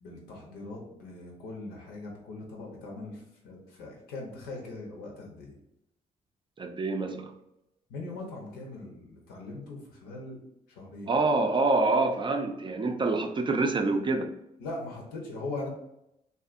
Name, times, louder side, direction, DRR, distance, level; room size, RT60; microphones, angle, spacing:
voice 1, 0.0-5.6 7.9-10.4 10.7-11.2 14.6-15.7, left 2 dB, 90° left, -1 dB, 0.7 m, -40 dB
voice 2, 6.6-7.3 11.1-14.3, right 3 dB, 30° right, 5 dB, 0.4 m, -26 dB
2.6 x 2.4 x 2.4 m, 0.82 s
supercardioid pair, 60°, 16 cm